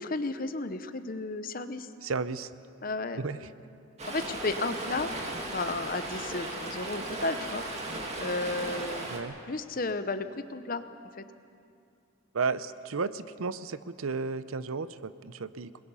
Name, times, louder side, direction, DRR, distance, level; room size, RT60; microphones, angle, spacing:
voice 1, 0.0-1.9 2.8-3.2 4.1-5.1 5.5-7.6 8.2-9.1 9.5-10.8 11.2-11.3, left 3 dB, 45° left, 10 dB, 0.9 m, -33 dB
voice 2, 2.0-2.5 3.2-3.5 9.1-9.4 12.3-15.8, right 4 dB, 85° right, 14 dB, 0.7 m, -33 dB
Stream, 4.0-9.2, right 2 dB, 30° right, 2.2 m, -36 dB
28.0 x 21.0 x 5.6 m, 2.5 s
head